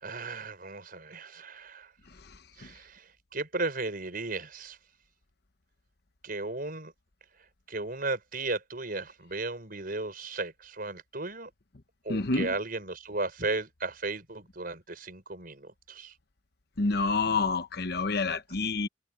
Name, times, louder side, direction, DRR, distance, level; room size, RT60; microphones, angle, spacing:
voice 1, 0.0-1.9 2.6-4.8 6.2-6.9 7.7-11.5 12.0-16.1, right 3 dB, 45° right, 5.9 m, -35 dB
voice 2, 12.1-12.5 16.8-18.9, left 3 dB, 55° left, 1.0 m, -28 dB
head